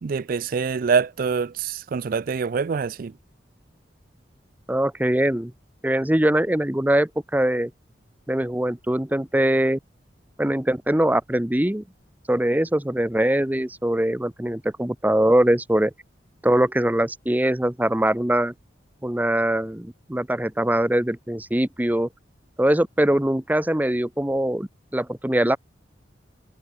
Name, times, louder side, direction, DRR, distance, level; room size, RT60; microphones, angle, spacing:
voice 1, 0.0-3.1, right 5 dB, 50° right, 0.4 m, -25 dB
voice 2, 4.7-5.5 5.8-7.7 8.3-9.8 10.4-11.8 12.3-15.9 16.4-18.5 19.0-22.1 22.6-25.6, right 1 dB, 10° right, 0.8 m, -22 dB
head